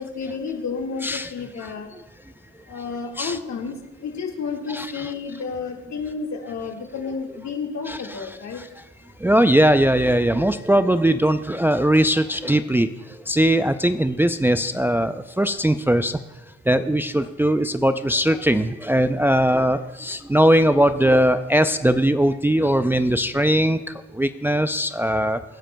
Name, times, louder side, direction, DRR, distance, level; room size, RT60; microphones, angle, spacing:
voice 1, 0.0-1.9 2.7-8.6, left 5 dB, 65° left, 1 dB, 1.9 m, -31 dB
voice 2, 4.7-5.1 7.9-8.2 9.2-16.2 16.7-25.4, right 1 dB, 5° right, 10 dB, 0.4 m, -20 dB
25.0 x 10.0 x 2.2 m, 1.1 s
supercardioid pair, 65°, 29 cm